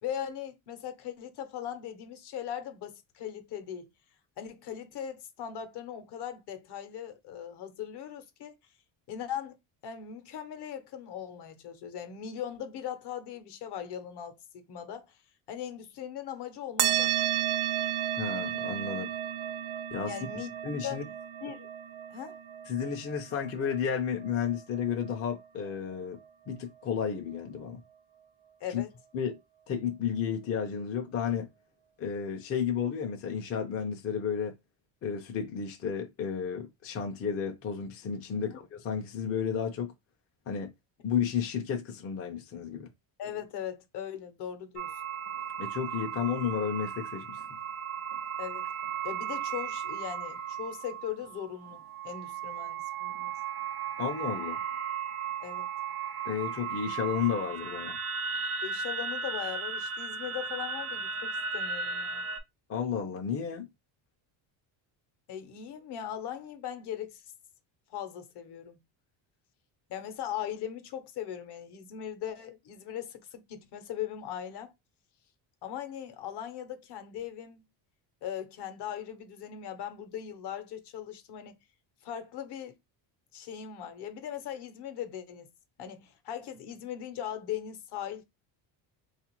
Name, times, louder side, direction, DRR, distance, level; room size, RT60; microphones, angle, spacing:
voice 1, 0.0-3.9 4.4-8.6 9.1-9.6 9.8-15.2 15.5-17.5 20.1-21.0 21.4-21.7 22.1-22.4 28.6-28.9 38.3-38.6 43.2-44.9 48.4-48.7 49.0-53.3 55.4-55.7 58.6-62.3 65.3-67.2 67.9-68.8 69.9-74.7 75.6-77.7 78.2-81.6 82.0-82.7 83.3-85.5 85.8-88.2, left 9 dB, 55° left, 0.8 m, -39 dB
sound 1, 16.8-25.7, right 11 dB, 70° right, 0.7 m, -33 dB
voice 2, 18.2-19.1 19.9-20.1 20.6-21.0 22.7-26.2 26.5-27.8 28.7-28.8 29.1-29.4 29.7-31.5 32.0-34.5 35.0-39.9 40.5-40.7 41.0-42.9 45.6-47.4 54.0-54.6 56.2-58.0 62.7-63.7, left 7 dB, 30° left, 0.4 m, -32 dB
sound 2, 44.8-62.4, right 6 dB, 30° right, 0.5 m, -36 dB
3.7 x 2.4 x 2.9 m
cardioid pair, 145°, 47 cm